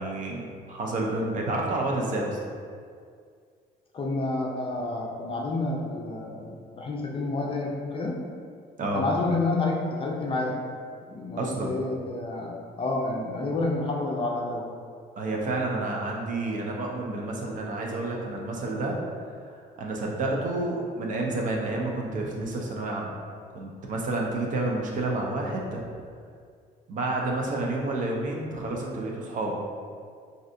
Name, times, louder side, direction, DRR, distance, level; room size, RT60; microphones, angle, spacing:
voice 1, 0.0-2.4 8.8-9.0 11.4-11.8 15.2-19.0 19.5-23.2 23.5-25.8 26.9-29.6, right 2 dB, 50° right, -1 dB, 0.5 m, -30 dB
voice 2, 3.9-8.2 8.9-10.6 11.1-14.7, left 2 dB, 30° left, -1 dB, 0.4 m, -29 dB
3.2 x 2.7 x 2.6 m, 2.1 s
cardioid pair, 110°, 17 cm